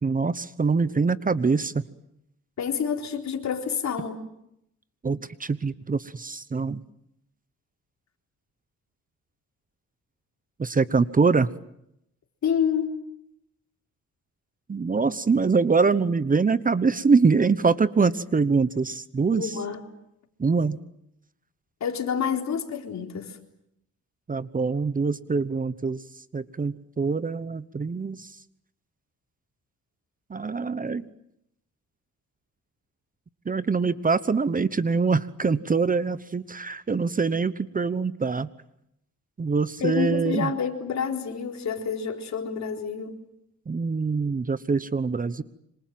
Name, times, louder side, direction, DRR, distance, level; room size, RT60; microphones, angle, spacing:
voice 1, 0.0-1.8 5.0-6.8 10.6-11.5 14.7-19.5 20.4-20.8 24.3-26.0 26.3-28.3 30.3-31.1 33.5-38.5 39.4-40.5 43.7-45.4, right 4 dB, 25° right, 15 dB, 1.0 m, -24 dB
voice 2, 2.6-4.2 12.4-13.0 19.3-19.8 21.8-23.4 39.8-43.2, left 7 dB, 60° left, 3 dB, 4.1 m, -28 dB
27.0 x 26.0 x 7.7 m, 0.80 s
cardioid pair, 100°, 31 cm